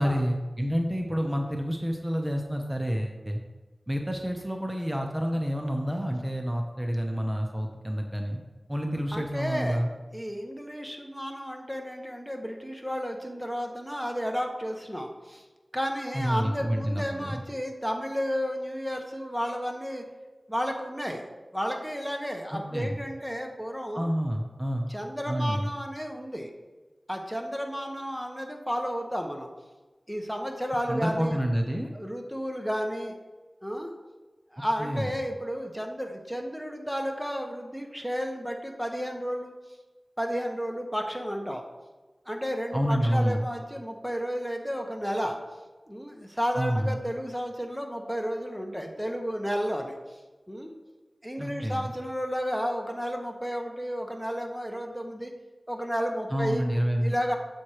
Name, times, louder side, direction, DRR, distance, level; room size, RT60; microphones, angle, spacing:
voice 1, 0.0-3.4 3.9-8.4 8.7-9.9 16.1-17.3 22.7-23.0 23.9-24.9 25.3-25.7 30.9-31.9 34.6-35.1 42.7-43.5 46.5-47.0 51.4-51.9 56.3-57.1, equal, 15° right, 2 dB, 0.8 m, -28 dB
voice 2, 9.1-9.8 10.1-15.4 15.7-20.0 20.5-24.1 24.9-26.5 27.1-29.5 30.1-31.4 31.9-33.1 33.6-33.9 34.5-39.5 40.2-41.6 42.3-45.4 45.9-50.0 50.5-50.7 51.2-55.3 55.7-56.6 57.0-57.4, equal, ahead, 2 dB, 1.1 m, -32 dB
7.4 x 4.4 x 4.9 m, 1.2 s
wide cardioid pair, 65°, 0 cm